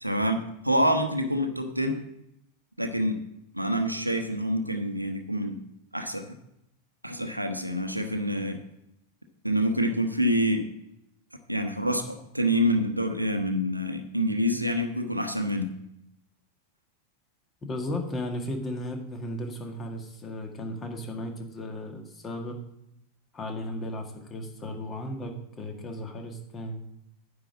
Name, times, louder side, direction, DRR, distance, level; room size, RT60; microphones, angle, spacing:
voice 1, 0.0-2.0 2.8-3.2 3.5-5.6 5.9-6.3 7.0-8.6 9.4-10.6 11.5-15.7, equal, 90° right, 6 dB, 1.0 m, -27 dB
voice 2, 17.6-22.5 23.3-26.8, left 1 dB, 20° left, 3 dB, 1.8 m, -35 dB
9.6 x 5.3 x 7.3 m, 0.80 s
figure-of-eight pair, 90°, 0 cm